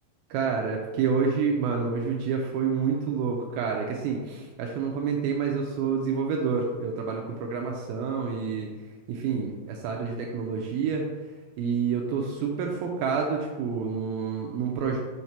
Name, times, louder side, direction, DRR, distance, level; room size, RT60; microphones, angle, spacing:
voice 1, 0.3-8.7 9.1-11.1 11.6-15.0, right 5 dB, 90° right, 1 dB, 2.2 m, -28 dB
6.5 x 4.7 x 4.2 m, 1.3 s
omnidirectional pair, 4.9 m